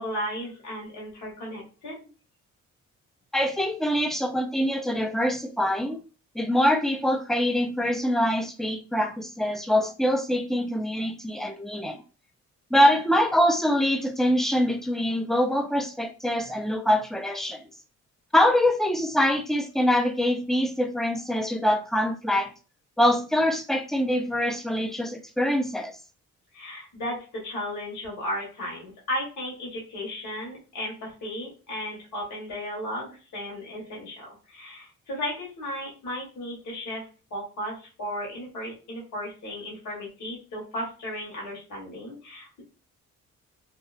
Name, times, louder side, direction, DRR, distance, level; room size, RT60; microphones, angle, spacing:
voice 1, 0.0-2.1 26.5-37.0 37.3-42.6, left 1 dB, 75° left, 1.4 m, -35 dB
voice 2, 3.3-6.0 6.4-12.0 12.7-17.6 18.3-22.5 23.0-25.9, equal, ahead, 0.3 m, -24 dB
2.7 x 2.3 x 2.4 m
cardioid pair, 90°, 30 cm